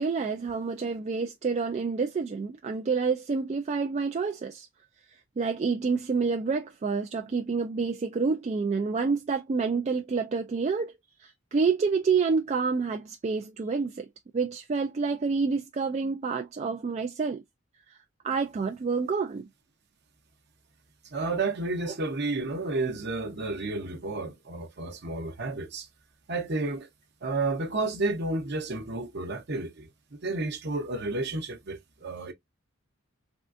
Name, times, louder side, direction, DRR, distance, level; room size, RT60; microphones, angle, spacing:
voice 1, 0.0-4.7 5.1-10.9 11.2-14.1 14.3-17.4 17.9-18.0 18.2-19.5, right 5 dB, 35° right, 0.3 m, -28 dB
voice 2, 21.1-25.9 26.3-26.9 27.2-32.3, right 3 dB, 55° right, 0.8 m, -31 dB
3.6 x 2.4 x 2.5 m
head